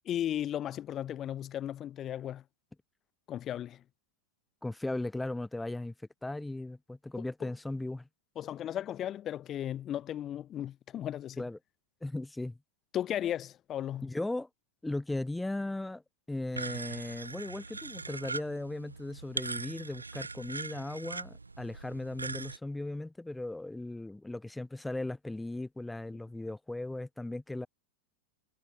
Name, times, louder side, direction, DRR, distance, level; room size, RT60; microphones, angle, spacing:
voice 1, 0.0-2.4 3.3-3.8 7.2-7.5 8.4-11.4 12.9-14.1, left 11 dB, 30° left, 1.2 m, -35 dB
voice 2, 4.6-5.9 6.2-8.1 11.4-11.6 12.0-12.6 14.0-14.5 14.8-16.0 16.3-27.7, left 2 dB, 5° left, 1.4 m, -37 dB
sound 1, 16.5-22.6, right 3 dB, 80° right, 5.9 m, -40 dB
figure-of-eight pair, 90°, 0 cm